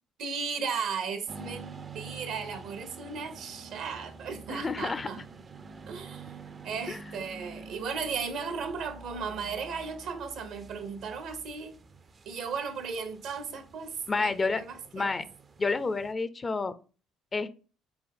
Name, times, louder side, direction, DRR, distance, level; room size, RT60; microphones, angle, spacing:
voice 1, 0.2-5.2 5.9-6.4 6.6-11.8 12.2-15.2, right 5 dB, 65° right, 0.9 m, -36 dB
sound 1, 1.3-16.1, right 4 dB, 40° right, 0.5 m, -48 dB
voice 2, 4.5-5.2 6.9-7.0 14.1-14.6 14.9-15.2 15.6-16.7 17.3-17.5, left 4 dB, 30° left, 0.5 m, -29 dB
4.2 x 3.5 x 3.6 m
hypercardioid pair, 60°, 0 cm